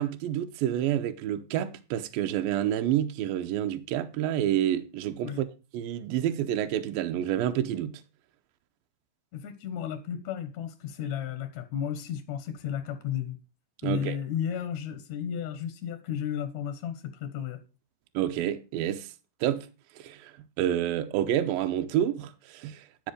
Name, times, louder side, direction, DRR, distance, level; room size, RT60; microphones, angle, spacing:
voice 1, 0.0-5.5 5.7-8.0 13.8-14.2 18.1-19.1 19.4-19.7 20.0-20.3 20.6-23.1, right 11 dB, 80° right, 2.4 m, -28 dB
voice 2, 9.3-13.4 13.8-17.6, left 9 dB, 65° left, 2.0 m, -33 dB
10.5 x 7.4 x 5.0 m
omnidirectional pair, 4.3 m